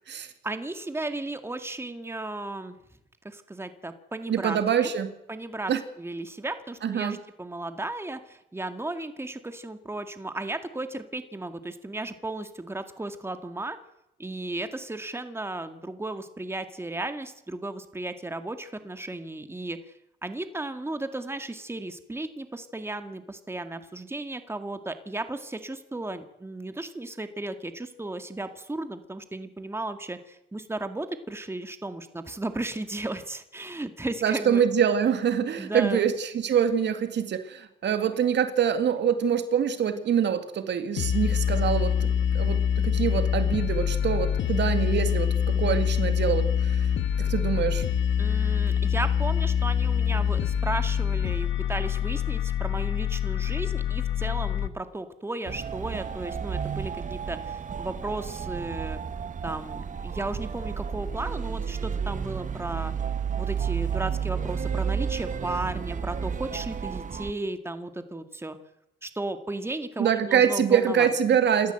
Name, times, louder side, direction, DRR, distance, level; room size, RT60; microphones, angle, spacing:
voice 1, 0.4-2.8 3.2-4.9 5.3-5.7 6.0-13.8 14.2-19.9 20.2-34.6 35.6-36.1 48.2-59.0 59.4-62.9 63.4-68.6 69.0-71.1, right 2 dB, 10° right, 9 dB, 2.0 m, -35 dB
voice 2, 4.3-5.1 5.7-5.8 6.8-7.2 34.2-46.9 47.2-47.8 70.0-71.7, right 8 dB, 60° right, 9 dB, 2.2 m, -25 dB
sound 1, 41.0-54.7, left 8 dB, 70° left, 1.5 m, -25 dB
sound 2, 55.5-67.3, right 7 dB, 40° right, 1.2 m, -32 dB
27.5 x 13.5 x 7.9 m, 0.83 s
cardioid pair, 90°, 20 cm